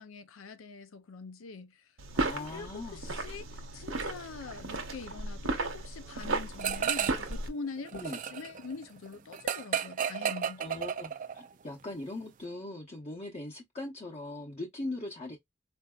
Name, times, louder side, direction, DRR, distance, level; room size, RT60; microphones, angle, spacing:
voice 1, 0.0-1.9 2.3-10.6, left 4 dB, 90° left, 0.6 m, -44 dB
sound 1, 2.0-7.5, right 2 dB, 80° right, 0.9 m, -35 dB
voice 2, 2.1-3.0 7.9-8.2 10.6-15.4, left 2 dB, 30° left, 0.8 m, -40 dB
sound 2, 6.6-7.3 7.6-11.5, right 8 dB, 40° right, 0.3 m, -33 dB
4.5 x 2.6 x 2.3 m
head